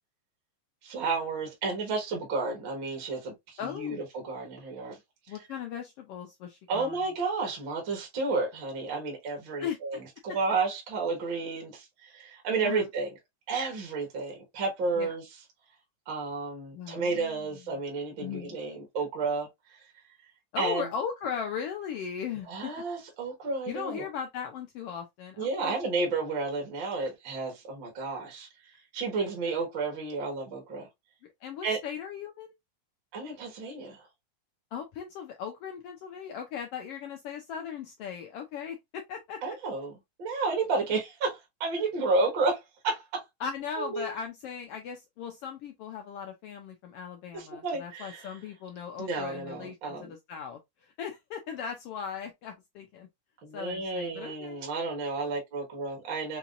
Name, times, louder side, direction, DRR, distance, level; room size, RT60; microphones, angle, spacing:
voice 1, 0.8-5.0 6.7-10.0 10.2-13.1 13.5-15.3 16.1-19.8 20.6-20.9 22.4-24.1 25.4-28.5 28.9-30.9 31.6-31.8 33.1-34.1 39.4-39.9 40.2-43.2 43.8-44.1 47.3-48.3 49.0-50.1 53.4-56.4, right 3 dB, 45° right, 1.8 m, -31 dB
voice 2, 3.6-4.0 5.3-7.0 9.6-9.8 12.6-12.9 15.0-15.1 16.7-17.6 18.2-18.6 20.5-22.7 23.7-25.8 31.4-32.5 34.7-39.4 43.4-53.1 53.5-54.6, left 7 dB, 85° left, 1.3 m, -38 dB
5.5 x 2.9 x 2.4 m
omnidirectional pair, 3.4 m